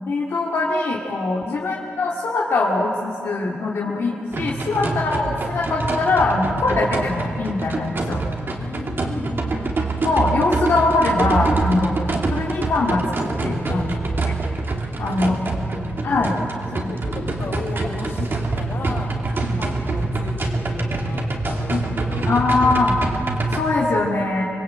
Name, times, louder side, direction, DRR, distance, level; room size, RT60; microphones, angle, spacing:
voice 1, 0.1-4.1 4.4-8.2 10.0-11.9 12.3-13.9 15.0-15.3 16.0-16.4 16.8-16.9 19.4-19.6 21.7-21.9 22.3-23.0 23.5-24.4, left 3 dB, 90° left, -4 dB, 2.3 m, -22 dB
sound 1, 4.3-23.6, right 3 dB, 55° right, 2.7 m, -25 dB
voice 2, 8.5-9.9 13.7-13.9 15.0-15.4 15.7-16.0 16.7-19.2 19.6-22.3, left 2 dB, 70° left, 0 dB, 5.5 m, -34 dB
25.0 x 21.5 x 8.8 m, 2.7 s
wide cardioid pair, 90°, 4 cm